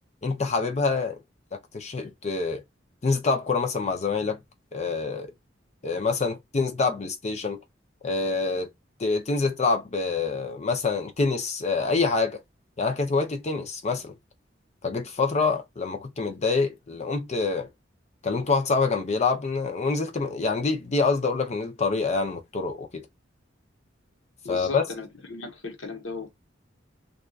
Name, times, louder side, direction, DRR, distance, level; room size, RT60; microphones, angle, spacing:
voice 1, 0.2-1.2 1.7-2.6 3.0-4.4 4.7-5.3 5.8-7.6 8.0-8.7 9.0-12.4 12.8-14.1 14.8-17.7 18.2-23.1 24.5-24.8, left 4 dB, 35° left, 0.5 m, -26 dB
voice 2, 24.4-26.3, left 3 dB, 80° left, 1.0 m, -36 dB
2.7 x 2.3 x 2.3 m
head